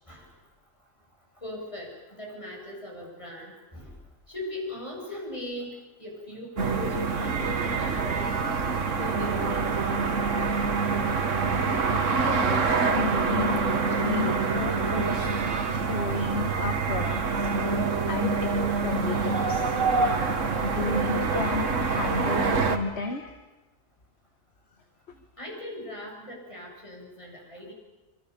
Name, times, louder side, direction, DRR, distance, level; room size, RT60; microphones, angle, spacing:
voice 1, 1.4-3.9 4.3-8.3 9.0-9.7 14.2-14.3 25.4-27.7, left 1 dB, 25° left, -1 dB, 8.1 m, -39 dB
sound 1, 6.6-22.8, right 4 dB, 70° right, 2.0 m, -26 dB
voice 2, 12.1-13.6 13.9-17.7 18.1-19.7 20.6-23.4 25.1-25.2, left 4 dB, 55° left, 6 dB, 1.9 m, -33 dB
26.0 x 25.5 x 7.0 m, 1.1 s
omnidirectional pair, 1.4 m